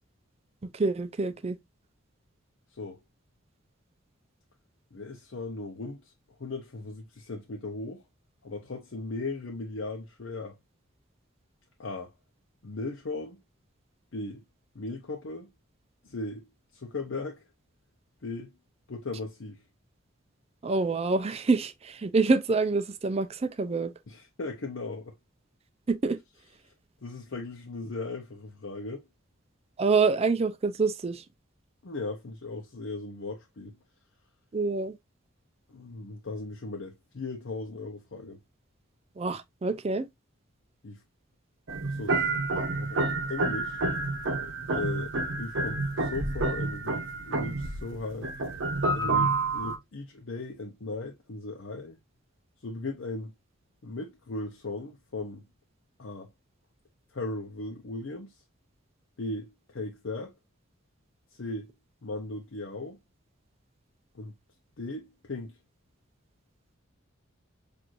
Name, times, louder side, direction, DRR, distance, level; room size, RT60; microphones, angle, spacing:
voice 1, 0.7-1.6 20.6-23.9 25.9-26.2 29.8-31.2 34.5-34.9 39.2-40.1, right 4 dB, 30° right, 0.4 m, -26 dB
voice 2, 4.9-6.1 6.4-8.0 8.4-10.6 11.8-12.1 12.6-13.4 14.1-14.4 14.7-15.5 16.0-16.5 16.7-17.4 18.2-18.5 18.9-19.6 24.1-25.1 27.0-29.1 31.8-33.7 35.7-38.4 40.8-41.0 41.8-42.2 42.5-43.8 44.7-48.3 48.9-52.0 52.6-53.3 53.8-55.4 56.0-56.3 57.1-58.3 59.2-60.3 61.3-61.7 62.0-63.0 64.1-64.3 64.8-65.5, left 2 dB, 65° left, 0.7 m, -37 dB
sound 1, 41.7-49.8, right 3 dB, 65° right, 0.8 m, -29 dB
6.1 x 2.6 x 2.5 m
head